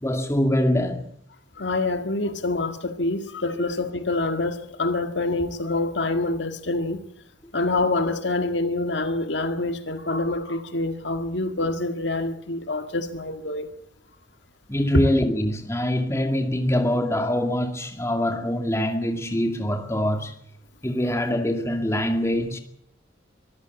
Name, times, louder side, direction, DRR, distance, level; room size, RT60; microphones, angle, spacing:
voice 1, 0.0-1.0 3.5-3.7 14.7-20.4 20.8-22.6, left 1 dB, 15° left, 2.3 m, -24 dB
voice 2, 1.6-7.0 7.5-13.7, left 2 dB, 65° left, 1.9 m, -26 dB
24.0 x 14.0 x 8.2 m
head